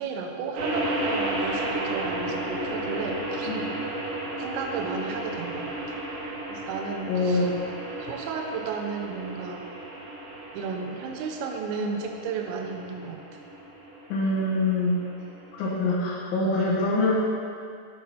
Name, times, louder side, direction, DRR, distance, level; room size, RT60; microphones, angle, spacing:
voice 1, 0.0-3.5 4.4-6.0 6.5-7.5 8.0-9.7 10.5-13.2, right 5 dB, 85° right, 3 dB, 3.3 m, -33 dB
sound 1, 0.5-15.8, right 1 dB, 70° right, 3.9 m, -33 dB
voice 2, 7.1-7.5 14.1-15.0 15.5-17.2, left 2 dB, 70° left, -7 dB, 2.3 m, -24 dB
8.6 x 4.7 x 4.2 m, 2.3 s
omnidirectional pair, 5.8 m